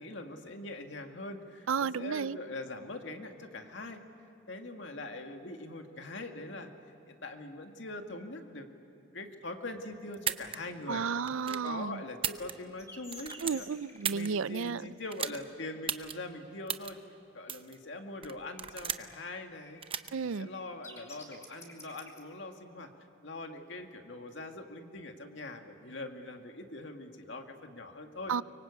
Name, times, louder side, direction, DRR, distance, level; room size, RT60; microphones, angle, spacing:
voice 1, 0.0-4.0 4.5-6.7 7.1-8.7 9.0-11.1 11.5-13.7 14.1-17.0 17.3-19.8 20.2-22.9 23.2-28.3, left 2 dB, 65° left, 4 dB, 2.1 m, -42 dB
voice 2, 1.7-2.4 10.9-12.0 13.4-14.8 20.1-20.5 28.3-28.4, right 6 dB, 90° right, 18 dB, 0.5 m, -32 dB
sound 1, 10.1-10.6 11.2-11.7 12.1-12.8 13.1-14.3 15.1-15.4 15.9-16.1 16.7-16.9 17.5-17.8 18.2-19.1 19.8-20.1, right 8 dB, 25° right, 0.8 m, -35 dB
sound 2, 12.8-14.2 18.5-18.7 19.0-22.2, left 2 dB, 15° left, 3.3 m, -51 dB
24.5 x 24.0 x 8.4 m, 2.8 s
head